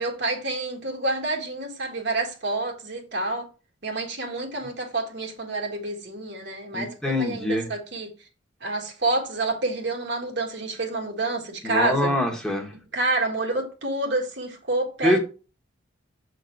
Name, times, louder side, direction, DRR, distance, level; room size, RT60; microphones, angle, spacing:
voice 1, 0.0-3.5 3.8-8.1 8.6-12.1 12.9-15.2, right 2 dB, 60° right, 1.6 m, -28 dB
voice 2, 6.7-7.7 11.6-12.7 15.0-15.2, left 1 dB, 5° left, 1.2 m, -24 dB
7.3 x 4.0 x 4.5 m
head